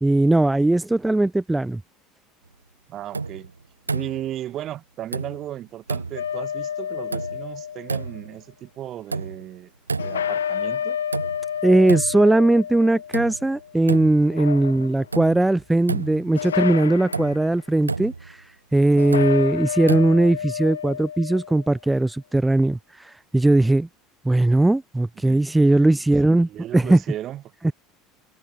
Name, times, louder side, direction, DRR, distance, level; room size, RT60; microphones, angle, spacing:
voice 1, 0.0-1.8 11.6-18.4 18.7-23.9 24.3-26.5 26.7-27.0, right 2 dB, 10° right, 0.4 m, -19 dB
voice 2, 2.9-3.5 3.9-9.7 10.0-11.0 14.6-15.0 25.2-25.4 26.3-27.7, right 12 dB, 45° right, 0.8 m, -35 dB
sound 1, 3.1-3.5 3.9-4.4 5.1-5.6 5.9-6.3 7.1-7.6 7.9-8.3 9.1-9.6 9.9-10.4 11.1-11.6 11.9-12.3 13.1-13.5 13.9-14.4 15.1-15.5 15.9-16.4 17.1-17.5 17.9-18.3 19.1-19.5 19.9-20.4, right 4 dB, 90° right, 0.6 m, -30 dB
sound 2, 6.2-8.2 10.0-13.7 14.2-15.2 16.4-17.5 19.0-21.7, left 8 dB, 80° left, 0.5 m, -30 dB
figure-of-eight pair, 70°, 0 cm